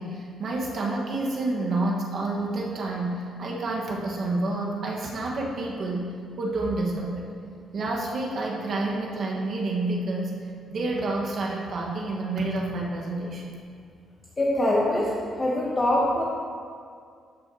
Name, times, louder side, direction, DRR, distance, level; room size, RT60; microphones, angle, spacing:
voice 1, 0.0-7.2 7.7-10.3 10.7-13.4, right 2 dB, 55° right, -2 dB, 1.4 m, -29 dB
voice 2, 14.4-16.2, left 1 dB, 25° left, -4 dB, 1.0 m, -23 dB
12.5 x 5.7 x 2.8 m, 2.2 s
cardioid pair, 90°, 0 cm